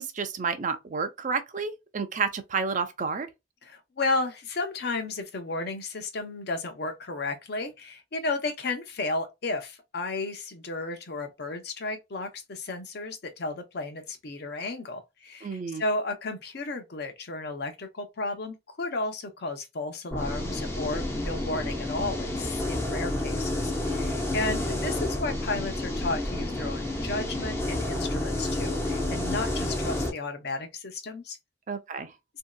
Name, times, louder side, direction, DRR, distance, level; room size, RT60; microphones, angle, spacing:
voice 1, 0.0-3.3 15.4-15.8 31.7-32.1, right 5 dB, 45° right, 0.5 m, -30 dB
voice 2, 3.6-31.4, left 2 dB, 60° left, 0.7 m, -33 dB
sound 1, 20.1-30.1, left 1 dB, 15° left, 0.6 m, -30 dB
3.0 x 2.7 x 2.2 m
head